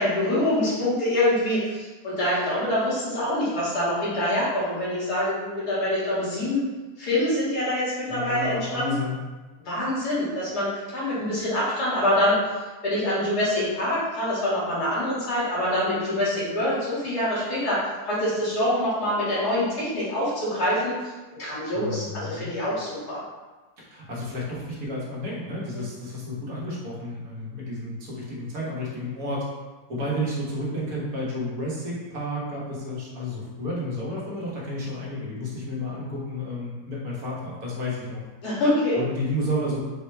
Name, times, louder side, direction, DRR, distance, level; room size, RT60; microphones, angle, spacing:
voice 1, 0.0-6.6 7.0-9.0 9.6-12.4 12.8-20.9 21.4-23.2 25.8-25.9 38.4-39.0, left 1 dB, 80° left, -9 dB, 2.1 m, -25 dB
voice 2, 8.1-9.2 21.7-22.5 23.8-29.5 29.9-38.2 38.9-39.8, left 1 dB, 65° right, -5 dB, 1.5 m, -31 dB
4.3 x 2.1 x 4.4 m, 1.2 s
omnidirectional pair, 1.7 m